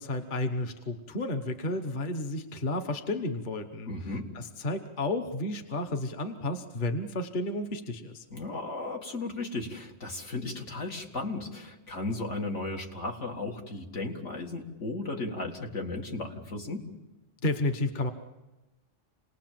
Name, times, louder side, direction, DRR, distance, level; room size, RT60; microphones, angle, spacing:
voice 1, 0.0-3.9 4.3-8.2 17.4-18.1, left 2 dB, 40° left, 6 dB, 1.2 m, -32 dB
voice 2, 3.9-4.3 8.3-16.9, left 2 dB, 70° left, 1 dB, 2.4 m, -35 dB
28.0 x 19.5 x 7.6 m, 1.1 s
omnidirectional pair, 1.3 m